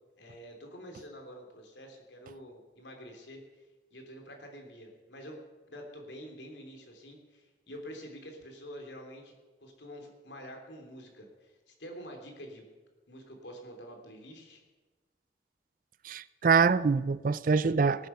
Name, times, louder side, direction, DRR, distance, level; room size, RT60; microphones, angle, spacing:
voice 1, 0.2-3.7 3.9-5.4 5.7-9.3 9.6-12.6 13.1-14.6, equal, 80° left, 3.1 m, -47 dB
voice 2, 16.0-18.1, right 5 dB, 50° right, 0.4 m, -25 dB
18.5 x 9.3 x 5.6 m
head